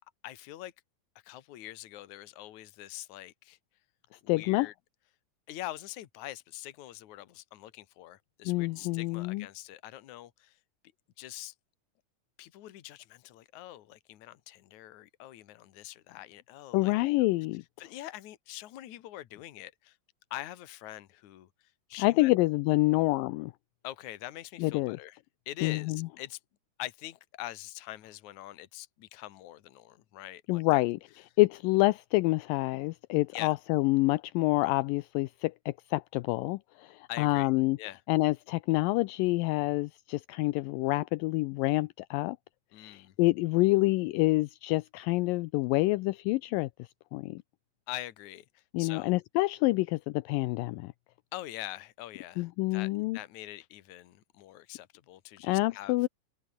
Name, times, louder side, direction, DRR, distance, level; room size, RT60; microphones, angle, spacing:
voice 1, 0.2-0.7 1.2-3.6 4.2-4.7 5.5-10.6 11.2-11.5 12.4-17.3 17.8-20.0 20.3-21.5 21.9-22.3 23.8-25.2 25.5-26.4 26.8-30.8 33.3-33.5 37.1-37.5 37.8-38.0 42.7-43.1 47.9-49.1 51.3-56.0, left 15 dB, 65° left, 2.6 m, -44 dB
voice 2, 4.3-4.7 8.5-9.5 16.7-17.6 22.0-23.5 24.6-25.0 25.6-26.1 30.5-31.0 31.4-37.8 38.1-42.4 42.8-46.7 47.1-47.4 48.7-50.9 52.4-53.2 55.4-56.1, left 21 dB, 80° left, 2.2 m, -27 dB
omnidirectional pair, 4.1 m